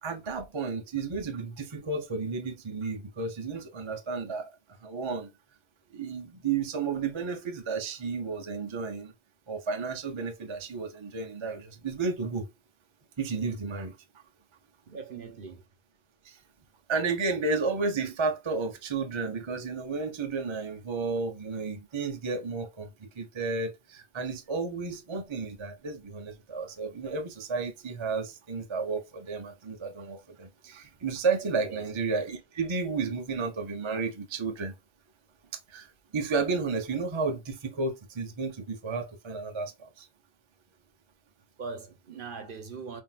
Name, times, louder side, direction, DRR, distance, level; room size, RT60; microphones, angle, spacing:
voice 1, 0.0-4.5 4.8-5.3 5.9-9.1 9.5-12.5 13.2-14.2 16.2-16.4 16.9-34.7 35.7-40.1, right 4 dB, 35° right, 0.5 m, -32 dB
voice 2, 14.9-15.7 31.6-31.9 41.6-43.0, right 5 dB, 50° right, 0.9 m, -40 dB
5.6 x 2.7 x 2.3 m
omnidirectional pair, 1.2 m